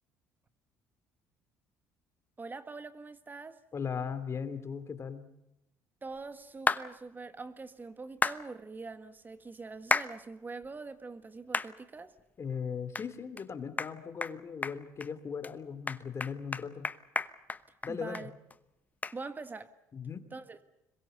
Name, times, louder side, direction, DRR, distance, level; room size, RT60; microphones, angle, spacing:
voice 1, 2.4-3.6 6.0-12.1 17.9-18.3 19.1-19.7 20.3-20.6, right 3 dB, 25° right, 1.6 m, -44 dB
voice 2, 3.7-5.3 12.4-16.9 17.8-18.3 19.9-20.2, left 6 dB, 40° left, 2.8 m, -38 dB
sound 1, 6.7-6.8 8.2-8.4 9.9-10.1 10.6-10.7 11.5-11.7 12.2-12.3 12.9-13.1 13.4-13.5 13.8-13.9 14.2-14.3 14.6-15.1 15.4-15.5 15.9-18.2 18.5-18.6 19.0-19.2, left 4 dB, 20° left, 1.0 m, -31 dB
26.0 x 22.5 x 6.8 m
supercardioid pair, 80°, 7 cm